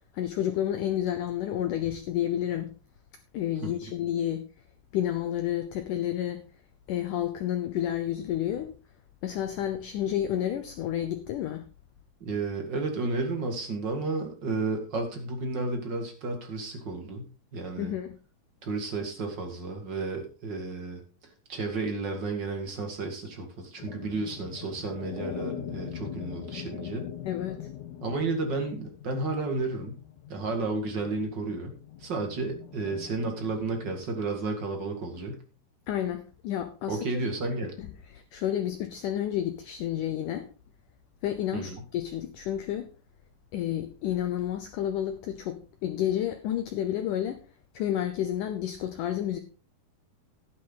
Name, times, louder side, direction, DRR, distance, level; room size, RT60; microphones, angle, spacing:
voice 1, 0.1-2.7 3.3-4.4 4.9-6.4 6.9-8.7 9.2-11.6 17.8-18.2 27.3-27.7 35.9-37.0 37.8-37.9 38.3-40.5 41.2-42.9 43.5-47.4 47.7-49.4, left 11 dB, 80° left, 1.8 m, -30 dB
voice 2, 12.2-17.9 18.6-21.0 21.5-27.1 28.0-30.0 30.3-35.4 36.9-37.7 41.5-41.8, right 3 dB, 40° right, 1.7 m, -32 dB
sound 1, 23.8-34.0, left 9 dB, 65° left, 2.1 m, -42 dB
11.5 x 10.5 x 3.9 m
omnidirectional pair, 4.8 m